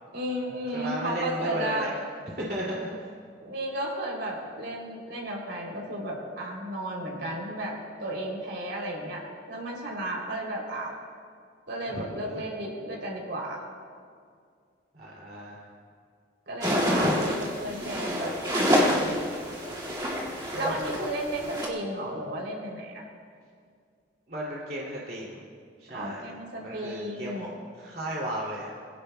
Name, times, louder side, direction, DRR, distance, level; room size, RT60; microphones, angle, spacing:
voice 1, 0.1-2.0 3.4-7.7 8.0-9.2 9.5-10.9 11.7-13.6 16.5-19.1 20.5-23.0 25.9-27.5, right 1 dB, 75° right, -1 dB, 3.2 m, -33 dB
voice 2, 0.7-2.0 2.4-3.1 11.9-12.3 14.9-15.6 20.5-21.0 24.3-25.4 25.8-26.2 26.6-28.7, right 1 dB, 50° right, -5 dB, 2.6 m, -35 dB
sound 1, 16.6-21.7, equal, 25° right, 2.0 m, -27 dB
22.5 x 16.5 x 2.2 m, 2.2 s
head